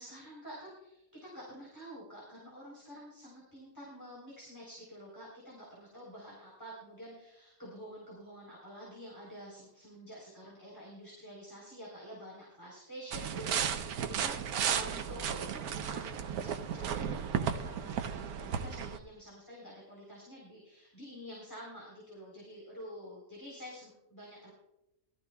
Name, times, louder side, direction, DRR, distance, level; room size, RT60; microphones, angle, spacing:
voice 1, 0.0-24.5, equal, 15° left, -5 dB, 3.9 m, -49 dB
sound 1, 13.1-19.0, right 8 dB, 80° right, 1.2 m, -34 dB
20.5 x 13.5 x 2.3 m, 0.87 s
omnidirectional pair, 1.6 m